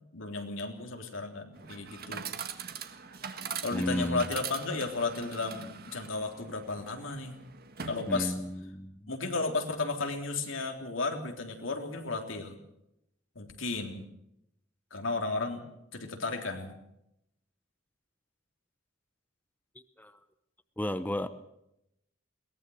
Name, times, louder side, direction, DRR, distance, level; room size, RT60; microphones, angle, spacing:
voice 1, 0.1-2.3 3.6-7.4 7.8-8.3 9.1-12.6 13.4-14.1 14.9-15.6 15.9-16.8, left 3 dB, 80° left, 3 dB, 3.4 m, -34 dB
Chatter / Coin (dropping), 1.5-8.6, right 7 dB, 50° right, 1.7 m, -42 dB
voice 2, 3.7-4.3 8.1-9.1 20.0-20.1 20.8-21.3, left 1 dB, 10° left, 10 dB, 0.9 m, -33 dB
22.0 x 19.0 x 6.4 m, 0.80 s
head